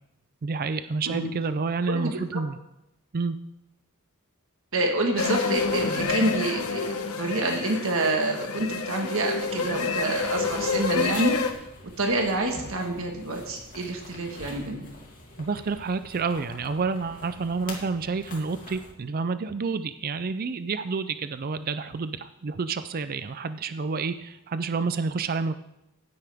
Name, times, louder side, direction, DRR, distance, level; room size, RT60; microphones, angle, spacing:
voice 1, 0.4-2.6 3.1-3.4 15.4-25.6, right 4 dB, 40° right, 12 dB, 0.5 m, -29 dB
voice 2, 1.8-2.4 4.7-11.3 12.0-14.9, right 2 dB, 65° right, 2 dB, 1.6 m, -27 dB
sound 1, 5.2-11.5, left 4 dB, 75° left, 1.1 m, -28 dB
sound 2, 10.2-18.9, left 2 dB, 40° left, 2.8 m, -45 dB
16.0 x 9.4 x 3.5 m, 0.86 s
head